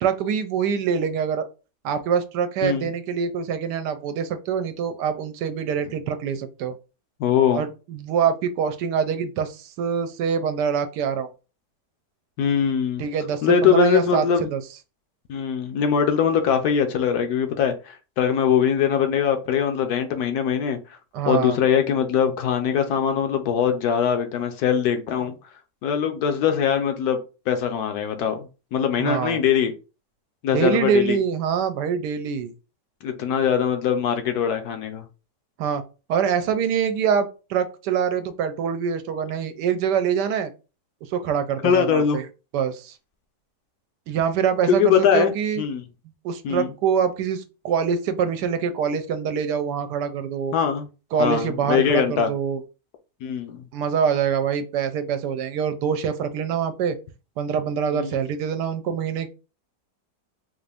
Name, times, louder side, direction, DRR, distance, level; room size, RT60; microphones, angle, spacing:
voice 1, 0.0-1.5 1.8-6.7 7.5-11.3 13.0-14.2 14.5-14.6 21.1-21.6 29.0-29.4 30.5-32.5 35.6-35.8 36.1-40.5 41.1-42.2 42.5-42.9 44.1-45.6 46.2-50.5 51.1-52.6 53.7-57.0 57.4-59.3, right 7 dB, 80° right, 10 dB, 1.1 m, -24 dB
voice 2, 7.2-7.6 12.4-13.0 13.4-14.5 15.3-20.8 21.3-25.3 25.8-27.2 27.5-28.4 28.7-29.7 30.4-31.2 33.0-35.0 41.6-42.2 44.7-45.8 46.4-46.7 50.5-50.9 51.2-52.3 53.2-53.6 57.9-58.2, left 7 dB, 70° left, 6 dB, 1.1 m, -22 dB
3.9 x 2.5 x 3.3 m, 0.32 s
omnidirectional pair, 1.8 m